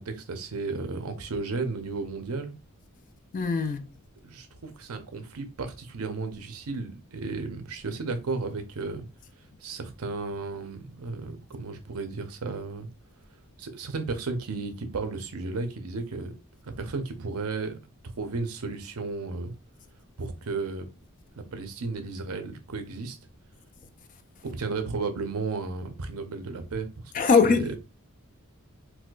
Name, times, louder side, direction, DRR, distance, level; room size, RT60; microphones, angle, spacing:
voice 1, 0.0-2.5 4.2-9.1 9.6-12.9 13.6-16.3 16.6-17.8 18.2-19.5 20.2-20.9 21.3-23.2 24.4-27.7, right 3 dB, 80° right, 0.6 m, -34 dB
voice 2, 3.3-3.9 27.1-27.8, left 4 dB, 35° left, 0.3 m, -22 dB
4.2 x 2.3 x 2.3 m
head